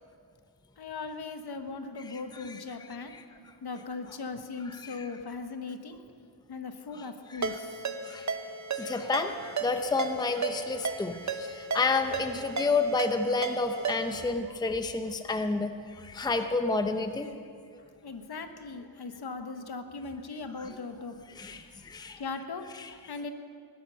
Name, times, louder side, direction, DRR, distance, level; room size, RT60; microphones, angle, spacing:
voice 1, 0.8-3.1 3.6-6.0 6.5-7.9 18.0-21.1 22.2-22.6 23.1-23.3, left 4 dB, 55° left, 7 dB, 1.3 m, -39 dB
voice 2, 2.1-3.2 4.7-5.1 7.0-7.6 8.0-8.3 8.7-17.3 20.5-20.7 21.3-22.2 22.7-22.9, left 3 dB, 10° left, 7 dB, 0.7 m, -31 dB
Ringtone, 7.4-14.3, right 4 dB, 40° right, 1.0 m, -35 dB
20.5 x 12.0 x 5.6 m, 2.2 s
wide cardioid pair, 105°, 45 cm